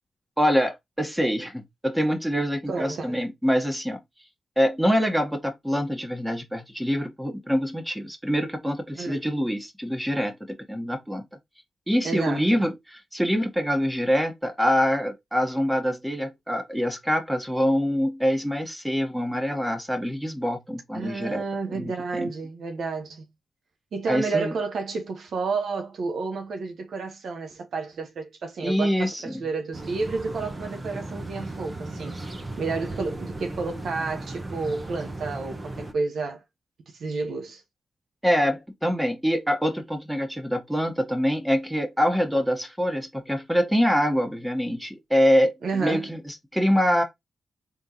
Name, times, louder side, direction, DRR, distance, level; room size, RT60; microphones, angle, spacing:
voice 1, 0.4-4.0 4.6-11.2 11.9-12.7 13.1-21.4 21.7-22.3 24.1-24.5 28.6-29.4 38.2-47.0, equal, 5° right, 1.5 m, -25 dB
voice 2, 2.7-3.2 8.9-9.2 12.0-12.6 20.9-23.3 23.9-32.1 32.6-36.4 36.9-37.6 45.6-46.1, right 4 dB, 75° right, 1.0 m, -31 dB
sound 1, 29.7-35.9, right 2 dB, 30° right, 1.0 m, -36 dB
3.8 x 3.3 x 2.7 m
cardioid pair, 60°, 0 cm